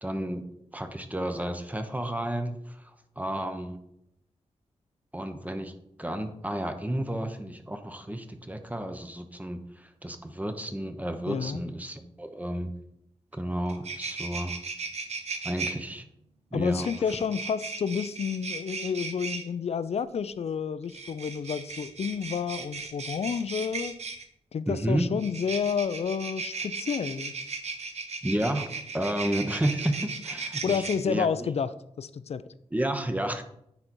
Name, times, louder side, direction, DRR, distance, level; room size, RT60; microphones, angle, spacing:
voice 1, 0.0-0.4 0.7-2.9 3.2-3.8 5.1-5.7 6.0-12.7 13.3-14.6 15.4-16.1 16.5-16.9 24.7-25.0 28.2-31.3 32.7-33.4, right 1 dB, 15° right, 0.8 m, -31 dB
voice 2, 11.3-11.6 16.5-23.9 24.5-27.3 30.6-31.7 32.0-32.4, left 6 dB, 60° left, 0.4 m, -30 dB
sound 1, 13.3-13.4 13.7-15.7 16.8-19.4 20.8-24.2 25.2-31.0, right 4 dB, 70° right, 1.0 m, -36 dB
9.8 x 4.0 x 4.5 m
wide cardioid pair, 90°, 12 cm